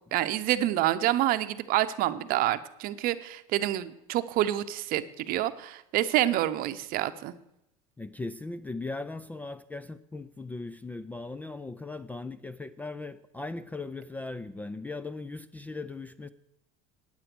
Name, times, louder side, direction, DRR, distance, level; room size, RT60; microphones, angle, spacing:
voice 1, 0.1-7.3, right 14 dB, 50° right, 0.8 m, -27 dB
voice 2, 8.0-16.3, left 3 dB, 10° left, 0.3 m, -38 dB
9.2 x 8.8 x 6.0 m
supercardioid pair, 110°, 18 cm